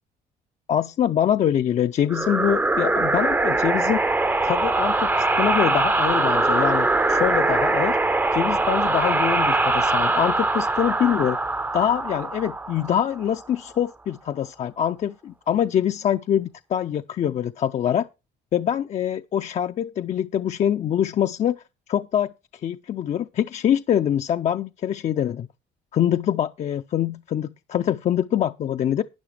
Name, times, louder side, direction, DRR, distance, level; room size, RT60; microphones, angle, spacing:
voice 1, 0.7-4.0 4.4-8.0 8.3-11.4 11.7-18.1 18.5-21.6 21.9-22.3 22.6-25.5 25.9-29.0, left 10 dB, 45° left, 0.4 m, -24 dB
sound 1, 2.1-13.4, right 2 dB, 10° right, 0.5 m, -22 dB
11.5 x 9.6 x 3.3 m
cardioid pair, 110°, 17 cm